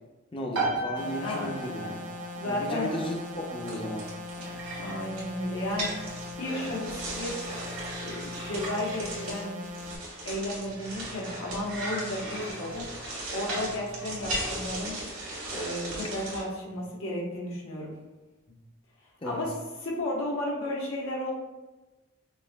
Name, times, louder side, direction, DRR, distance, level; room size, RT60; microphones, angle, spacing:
voice 1, 0.3-2.0 2.4-4.1 18.5-18.6 19.2-19.4, equal, 25° left, 1 dB, 0.4 m, -35 dB
sound 1, 0.5-15.0, right 2 dB, 65° right, 0.7 m, -40 dB
sound 2, 1.0-10.0, left 2 dB, 35° right, 0.3 m, -41 dB
voice 2, 1.2-1.5 2.4-2.9 4.8-6.1 6.4-7.4 8.0-9.6 10.2-12.8 13.3-14.9 15.5-17.9 19.2-19.5 19.8-21.3, left 1 dB, 85° left, -4 dB, 1.0 m, -33 dB
sound 3, 2.7-16.4, right 1 dB, 90° right, 1.4 m, -37 dB
5.3 x 2.6 x 2.2 m, 1.1 s
head